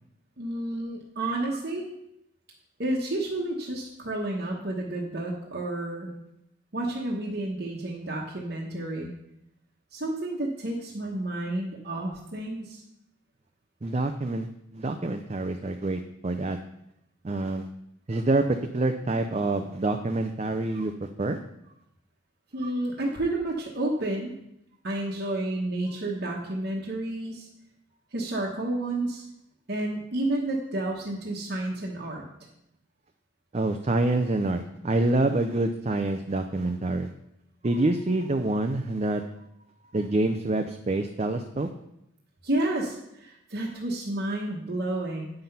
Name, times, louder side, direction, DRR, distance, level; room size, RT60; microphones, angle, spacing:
voice 1, 0.4-1.9 2.8-6.1 6.7-9.1 9.9-12.8 22.5-24.3 24.8-27.5 28.1-29.3 29.7-32.2 42.4-45.3, right 1 dB, 50° right, -2 dB, 1.1 m, -30 dB
voice 2, 13.8-14.5 14.7-16.6 17.2-17.7 18.1-21.4 22.6-22.7 33.5-37.1 37.6-39.2 39.9-41.7, right 2 dB, 30° right, 6 dB, 0.5 m, -26 dB
8.8 x 5.8 x 5.5 m, 0.80 s
head